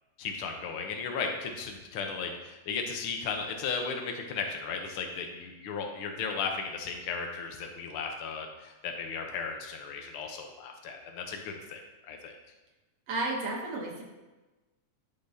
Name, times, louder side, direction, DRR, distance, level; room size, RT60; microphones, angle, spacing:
voice 1, 0.2-11.8 12.1-12.3, left 5 dB, 85° left, 3 dB, 1.2 m, -35 dB
voice 2, 13.1-14.0, right 2 dB, 65° right, -1 dB, 2.0 m, -32 dB
12.0 x 5.9 x 2.7 m, 1.1 s
omnidirectional pair, 3.5 m